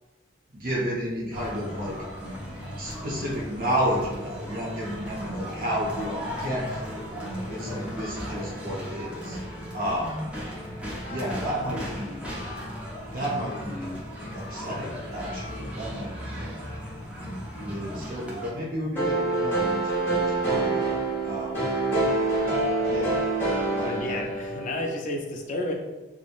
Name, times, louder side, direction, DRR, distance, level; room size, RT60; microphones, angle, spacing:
voice 1, 0.5-2.0 2.8-7.1 7.5-9.4 9.7-10.3 11.1-12.2 13.1-13.9 14.3-16.6 17.6-21.0 21.2-21.6 22.8-23.2 23.8-24.2, equal, 50° right, -3 dB, 0.7 m, -32 dB
sound 1, 1.3-18.5, equal, 5° right, 0.5 m, -36 dB
sound 2, 19.0-24.8, right 2 dB, 10° left, 0.9 m, -26 dB
voice 2, 23.8-25.7, left 1 dB, 45° left, 2 dB, 0.4 m, -31 dB
3.1 x 2.1 x 2.4 m, 1.2 s
head